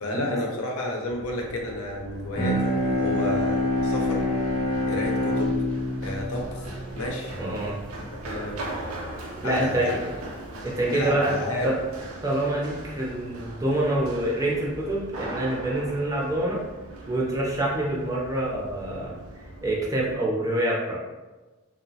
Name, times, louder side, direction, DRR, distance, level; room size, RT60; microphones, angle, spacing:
voice 1, 0.0-4.3 4.9-5.6 6.0-6.7 6.9-7.4 8.0-8.6 9.4-10.0 10.9-11.7, left 1 dB, 90° left, 0 dB, 0.6 m, -31 dB
Run, 1.1-20.1, right 1 dB, 90° right, 0.5 m, -40 dB
Bowed string instrument, 2.3-7.8, left 1 dB, 40° left, 0.7 m, -26 dB
voice 2, 7.4-7.8 9.4-9.9 10.6-11.4 11.6-11.8 12.2-16.6 17.1-19.2 19.6-21.0, right 1 dB, 15° right, -4 dB, 0.4 m, -26 dB
2.7 x 2.0 x 2.7 m, 1.2 s
head